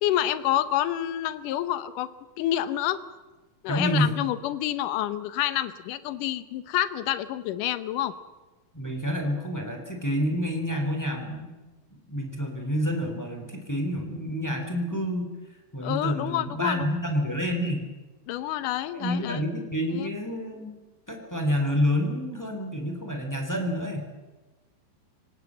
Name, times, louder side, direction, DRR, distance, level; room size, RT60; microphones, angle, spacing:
voice 1, 0.0-2.1 2.4-3.0 3.6-8.1 15.8-16.9 18.3-19.4 19.9-20.1, left 12 dB, 75° left, 13 dB, 2.0 m, -28 dB
voice 2, 3.7-4.2 8.7-11.5 12.1-15.3 15.7-17.8 18.9-20.7 21.1-24.1, equal, 5° left, 3 dB, 2.9 m, -28 dB
25.5 x 18.0 x 7.7 m, 1.2 s
omnidirectional pair, 4.9 m